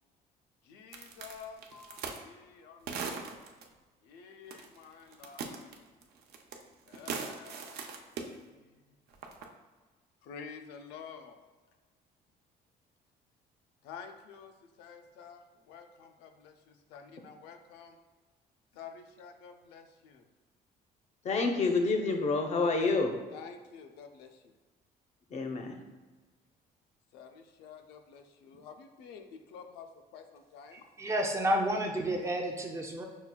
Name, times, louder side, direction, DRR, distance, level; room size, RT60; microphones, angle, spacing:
voice 1, 0.6-3.1 4.0-5.7 6.9-9.0 10.2-11.4 13.8-18.0 18.7-20.3 23.3-24.5 27.1-30.8, left 6 dB, 85° left, 5 dB, 0.4 m, -50 dB
sound 1, 0.9-2.2 2.9-3.6 4.5-4.8 5.1-6.6 6.9-8.3 9.1-9.4, right 5 dB, 70° right, 0.5 m, -39 dB
voice 2, 21.2-23.2 25.3-25.8, left 3 dB, 40° left, 4 dB, 0.5 m, -28 dB
voice 3, 30.7-33.0, equal, 15° right, 2 dB, 0.4 m, -31 dB
5.6 x 2.3 x 2.2 m, 1.3 s
cardioid pair, 110°, 17 cm